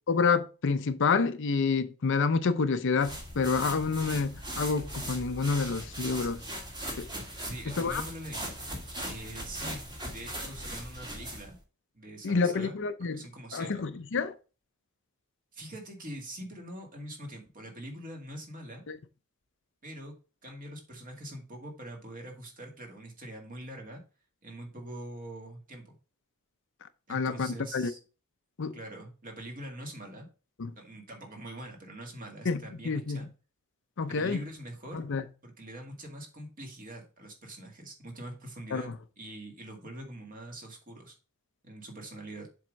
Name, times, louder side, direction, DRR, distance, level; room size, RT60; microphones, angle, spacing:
voice 1, 0.1-6.4 7.0-7.1 7.7-8.0 12.2-13.3 13.5-14.3 18.9-19.0 27.1-27.9 28.6-28.8 30.6-30.7 32.4-33.2 34.0-34.4 34.9-35.2 38.7-38.9, left 4 dB, 55° left, 0.6 m, -28 dB
sound 1, 3.0-11.6, right 1 dB, 20° right, 1.7 m, -39 dB
voice 2, 7.4-8.4 9.1-11.6 11.9-12.8 13.1-13.8 15.5-18.8 19.8-24.0 24.4-26.0 27.1-28.0 28.7-30.3 30.8-33.3 34.1-35.0 35.4-41.2 41.6-42.5, right 1 dB, 40° right, 2.0 m, -44 dB
7.4 x 3.7 x 5.2 m
head